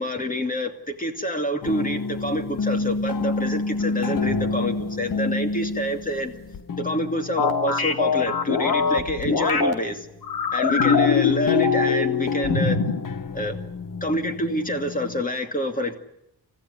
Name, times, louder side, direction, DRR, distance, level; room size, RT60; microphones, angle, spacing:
voice 1, 0.0-6.4 6.8-10.1 10.5-12.8 13.3-13.6 14.0-15.9, equal, 25° left, 5 dB, 2.5 m, -27 dB
sound 1, 1.6-9.9 10.8-15.2, left 5 dB, 60° left, 1.6 m, -27 dB
sound 2, 7.4-9.7 10.2-12.1 12.4-13.0, left 5 dB, 90° left, 2.2 m, -23 dB
29.5 x 15.0 x 10.0 m, 0.85 s
wide cardioid pair, 140°, 36 cm